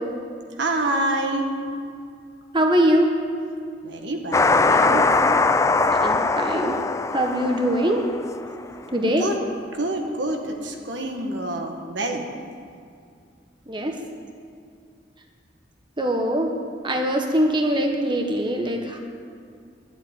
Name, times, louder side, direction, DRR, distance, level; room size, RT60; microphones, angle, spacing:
voice 1, 0.6-1.5 3.8-5.2 9.1-9.4 9.7-12.3, right 1 dB, 80° right, 3 dB, 1.6 m, -27 dB
voice 2, 2.5-3.1 6.0-6.8 7.1-8.0 8.9-9.3 13.7-13.9 16.0-16.5 16.8-19.0, right 1 dB, 25° right, 2 dB, 1.1 m, -22 dB
sound 1, 4.3-8.6, left 3 dB, 15° left, 0.4 m, -21 dB
11.5 x 8.0 x 9.5 m, 2.3 s
head